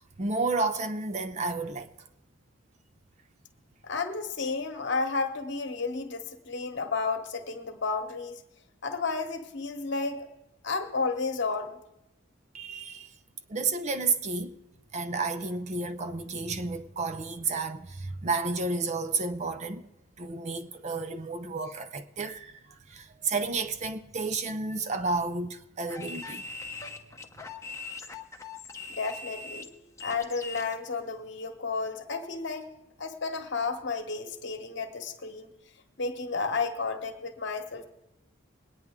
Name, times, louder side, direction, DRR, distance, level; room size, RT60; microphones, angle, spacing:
voice 1, 0.2-1.9 12.5-13.1 13.5-14.6 14.9-19.9 20.2-26.4, right 3 dB, 35° right, 0.5 m, -31 dB
voice 2, 3.8-8.4 8.8-10.2 10.6-11.8 28.9-29.7 30.0-32.7 33.0-35.5 36.0-37.8, left 4 dB, 55° left, 1.1 m, -32 dB
sound 1, 25.9-30.7, left 4 dB, 15° left, 0.7 m, -41 dB
21.5 x 9.4 x 3.6 m
head